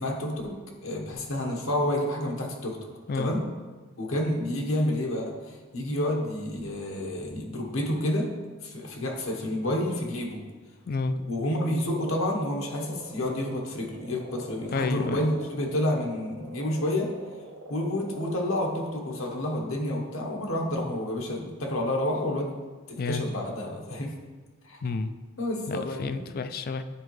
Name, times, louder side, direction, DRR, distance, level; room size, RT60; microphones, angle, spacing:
voice 1, 0.0-2.8 3.1-3.4 4.0-8.3 8.6-10.4 11.1-17.2 17.7-22.5 22.9-24.1 24.6-24.8 25.4-26.4, left 1 dB, 65° left, 1 dB, 1.1 m, -29 dB
Frog, 11.8-19.6, right 2 dB, 70° right, 0.7 m, -45 dB
voice 2, 14.7-15.2 23.0-23.2 24.8-25.1 25.7-26.8, left 4 dB, 45° left, 11 dB, 0.4 m, -30 dB
9.8 x 4.6 x 3.2 m, 1.3 s
head